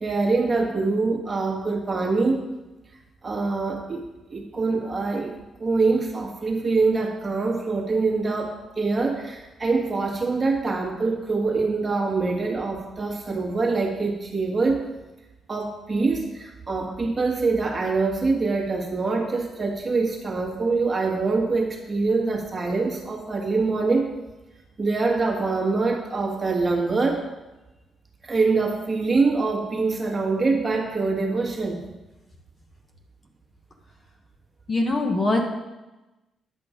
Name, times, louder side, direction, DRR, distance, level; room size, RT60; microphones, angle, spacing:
voice 1, 0.0-2.4 3.2-4.0 4.3-5.3 5.6-14.8 15.5-24.1 24.8-27.2 28.2-31.8, right 3 dB, 25° right, 0 dB, 1.5 m, -24 dB
voice 2, 34.7-35.4, left 2 dB, 30° left, 2 dB, 1.1 m, -22 dB
10.0 x 6.0 x 5.0 m, 1.1 s
cardioid pair, 130°, 0 cm